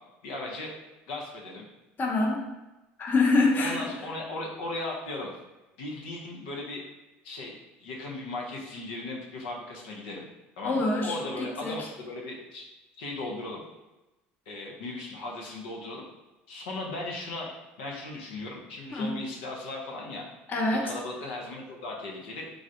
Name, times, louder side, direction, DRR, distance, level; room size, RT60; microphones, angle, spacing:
voice 1, 0.2-0.7 1.1-1.6 3.6-5.3 5.8-6.8 7.2-10.2 10.6-12.6 13.0-13.6 14.5-16.1 16.5-17.5 17.8-20.2 20.8-22.5, left 2 dB, 85° left, -1 dB, 0.5 m, -37 dB
voice 2, 2.0-2.5 3.0-3.9 10.6-11.9 18.9-19.1 20.5-20.9, left 3 dB, 35° left, 0 dB, 0.6 m, -26 dB
3.2 x 2.4 x 2.6 m, 1.0 s
supercardioid pair, 90°, 5 cm